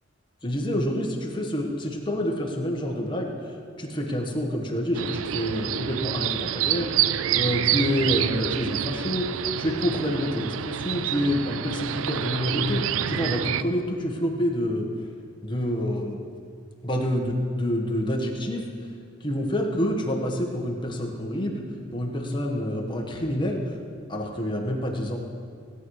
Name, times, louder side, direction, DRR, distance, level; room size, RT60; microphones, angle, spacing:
voice 1, 0.4-6.9 7.3-14.9 15.4-16.2 16.8-18.6 19.2-23.6 24.1-25.2, equal, 25° left, 0 dB, 1.5 m, -27 dB
sound 1, 4.9-13.6, right 10 dB, 85° right, 0.4 m, -27 dB
17.0 x 9.3 x 4.8 m, 2.2 s
head